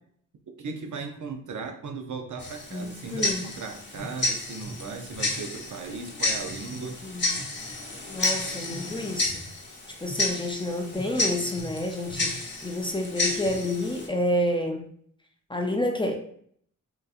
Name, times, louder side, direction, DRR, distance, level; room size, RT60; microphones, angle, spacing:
voice 1, 0.6-7.0, right 4 dB, 70° right, 4 dB, 0.5 m, -37 dB
Tick-tock, 2.4-14.1, left 2 dB, 35° left, 0.8 m, -31 dB
voice 2, 2.7-3.5 7.0-7.4 8.1-9.4 10.0-14.9 15.5-16.1, left 1 dB, 15° left, 2 dB, 0.4 m, -29 dB
3.8 x 2.6 x 2.4 m, 0.62 s
wide cardioid pair, 100°, 32 cm